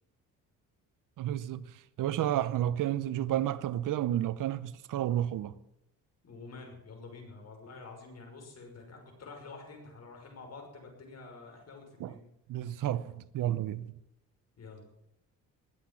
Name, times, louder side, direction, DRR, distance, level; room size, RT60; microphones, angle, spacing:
voice 1, 1.2-1.7 2.0-5.6 12.0-12.2 12.5-13.9, right 12 dB, 65° right, 0.8 m, -31 dB
voice 2, 6.2-12.2 14.6-14.8, left 3 dB, 50° left, 5.9 m, -48 dB
20.0 x 8.3 x 7.3 m
cardioid pair, 95°, 34 cm